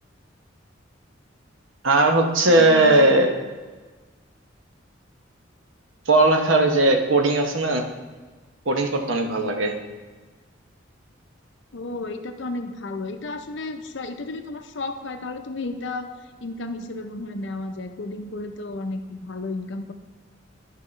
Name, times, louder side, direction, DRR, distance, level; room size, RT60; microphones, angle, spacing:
voice 1, 1.8-3.3 6.1-7.8 8.7-9.7, right 2 dB, 85° right, 4 dB, 0.9 m, -18 dB
voice 2, 2.6-3.1 11.7-16.1 16.4-19.9, left 2 dB, 65° left, 7 dB, 0.6 m, -33 dB
11.0 x 5.5 x 3.2 m, 1.3 s
head